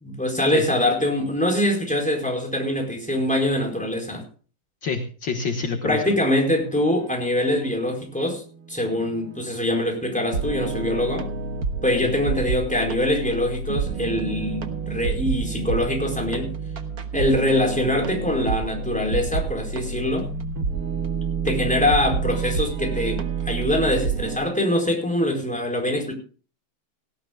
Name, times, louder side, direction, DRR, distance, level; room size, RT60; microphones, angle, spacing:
voice 1, 0.0-4.2 5.8-8.4 8.7-11.3 11.8-16.5 17.1-20.3 21.4-26.1, left 1 dB, 5° left, 1 dB, 4.7 m, -23 dB
voice 2, 4.8-6.0 12.0-12.1, left 5 dB, 60° left, 4 dB, 2.1 m, -27 dB
sound 1, 8.9-9.4 10.3-24.4, right 5 dB, 45° right, 1.5 m, -28 dB
18.5 x 17.0 x 2.3 m, 0.38 s
omnidirectional pair, 2.4 m